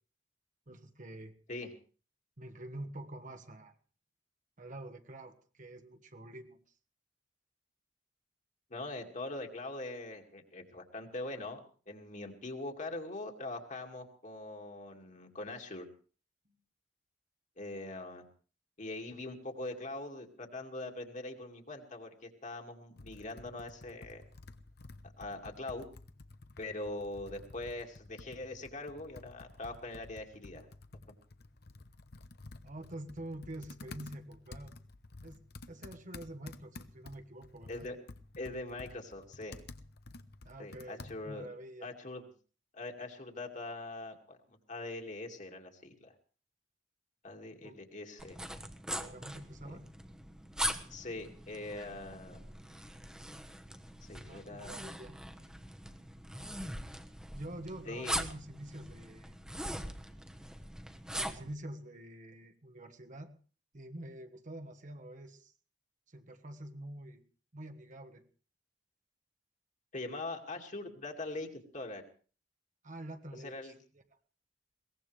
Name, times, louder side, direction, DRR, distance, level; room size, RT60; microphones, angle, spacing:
voice 1, 0.7-1.3 2.4-3.7 4.6-6.6 32.6-34.7 35.2-37.9 40.4-41.9 47.6-47.8 48.9-49.8 54.3-55.2 57.3-59.3 61.1-63.3 63.7-65.5 66.1-67.2 67.5-68.2 72.8-74.0, right 1 dB, 45° right, 6 dB, 1.5 m, -47 dB
voice 2, 8.7-11.6 11.9-15.9 17.6-18.2 18.8-24.2 25.2-25.9 26.6-30.7 37.7-38.0 38.4-39.6 40.6-41.5 41.8-42.2 42.7-46.1 47.2-48.4 49.6-49.7 50.9-52.4 54.0-54.7 57.9-58.2 69.9-71.5 71.7-72.0 73.4-73.7, left 2 dB, 45° left, 2 dB, 2.3 m, -42 dB
Computer keyboard, 23.0-41.5, left 2 dB, 60° left, 1.0 m, -52 dB
sound 1, 48.2-61.5, equal, 5° right, 1.2 m, -42 dB
22.0 x 18.5 x 3.4 m, 0.39 s
head